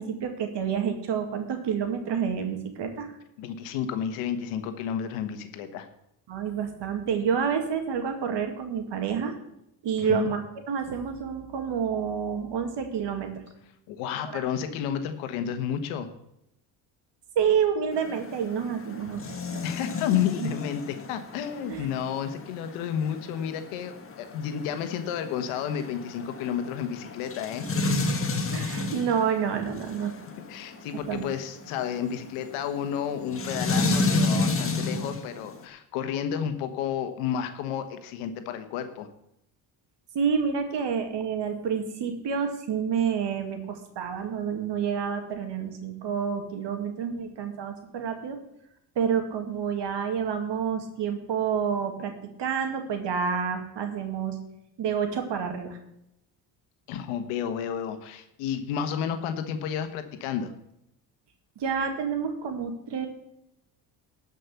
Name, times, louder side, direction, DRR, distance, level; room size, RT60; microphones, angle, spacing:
voice 1, 0.0-3.1 6.3-9.4 9.8-13.3 14.3-14.4 17.4-19.7 20.4-20.5 21.6-21.9 28.5-30.1 31.1-31.2 40.1-48.4 49.0-52.1 52.4-54.4 54.8-55.8 61.6-63.1, right 7 dB, 55° right, 5 dB, 2.2 m, -28 dB
voice 2, 3.4-5.9 10.0-10.3 13.9-16.1 19.6-27.7 30.5-39.1 56.9-60.5, left 8 dB, 85° left, 8 dB, 1.3 m, -31 dB
sound 1, 17.9-35.6, left 3 dB, 25° left, 1.7 m, -32 dB
12.5 x 5.4 x 8.0 m, 0.80 s
supercardioid pair, 85°, 49 cm